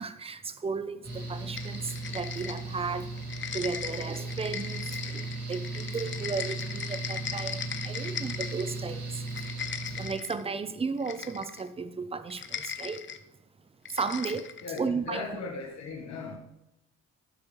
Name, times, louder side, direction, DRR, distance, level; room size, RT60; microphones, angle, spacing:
voice 1, 0.0-3.1 3.5-9.2 9.9-13.0 13.9-14.5 14.8-15.2, right 5 dB, 20° right, 0.6 m, -34 dB
Mechanical fan, 1.0-10.1, right 2 dB, 55° right, 2.7 m, -37 dB
sound 1, 1.6-2.9 3.2-8.8 9.2-10.4 11.0-11.7 12.3-13.2 13.9-14.9, left 8 dB, 40° left, 0.6 m, -38 dB
voice 2, 14.6-16.4, left 4 dB, 60° left, 1.4 m, -38 dB
11.0 x 6.6 x 3.2 m
cardioid pair, 90°, 30 cm